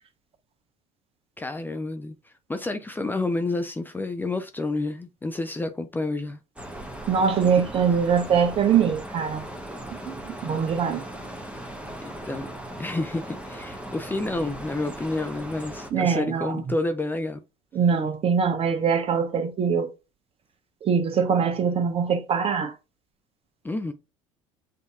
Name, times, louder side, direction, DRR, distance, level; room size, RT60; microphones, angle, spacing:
voice 1, 1.4-6.4 7.5-7.6 12.0-12.5 12.8-17.4 23.6-23.9, left 2 dB, 10° left, 0.5 m, -29 dB
sound 1, 6.6-15.9, right 1 dB, 5° right, 1.1 m, -38 dB
voice 2, 7.1-9.4 10.1-11.0 15.9-16.6 17.7-19.9 20.8-22.7, right 6 dB, 35° right, 1.0 m, -23 dB
8.0 x 2.8 x 2.3 m
figure-of-eight pair, 65°, 17 cm